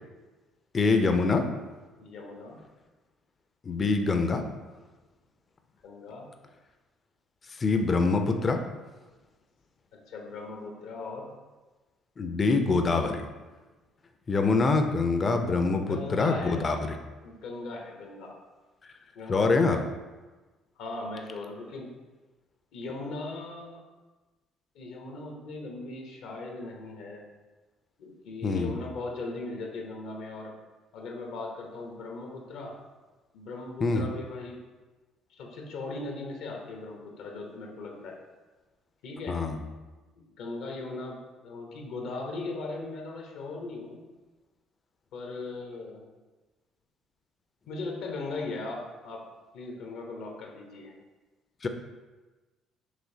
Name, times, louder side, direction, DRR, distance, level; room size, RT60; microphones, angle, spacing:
voice 1, 0.7-1.4 3.6-4.4 7.6-8.6 12.2-13.2 14.3-17.0 19.3-19.8 28.4-28.7 33.8-34.1 39.3-39.6 51.6-51.7, left 3 dB, 40° left, 6 dB, 0.5 m, -24 dB
voice 2, 2.0-2.6 5.8-6.3 9.9-11.3 15.7-16.6 17.2-18.4 19.1-19.7 20.8-21.9 22.7-23.8 24.7-27.2 28.0-30.5 30.9-32.7 33.3-34.6 35.3-38.2 39.0-39.4 40.2-41.2 41.4-44.0 45.1-46.0 47.7-49.2 49.5-50.9, left 3 dB, 75° left, 1 dB, 0.7 m, -38 dB
4.9 x 3.1 x 2.7 m, 1.2 s
supercardioid pair, 70°, 0 cm